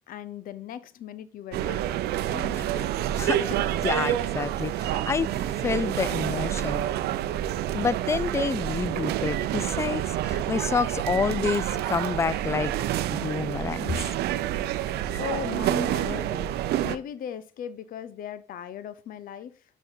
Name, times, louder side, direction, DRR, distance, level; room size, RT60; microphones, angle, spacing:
voice 1, 0.1-2.9 14.8-19.6, left 9 dB, 55° left, 0.6 m, -38 dB
sound 1, 1.5-17.0, right 12 dB, 75° right, 0.6 m, -28 dB
voice 2, 3.2-5.3 5.6-6.8 7.7-12.7 13.1-14.1, left 5 dB, 15° left, 0.3 m, -28 dB
Piano, 5.2-11.8, right 8 dB, 40° right, 0.9 m, -46 dB
6.8 x 6.2 x 3.7 m
cardioid pair, 110°, 17 cm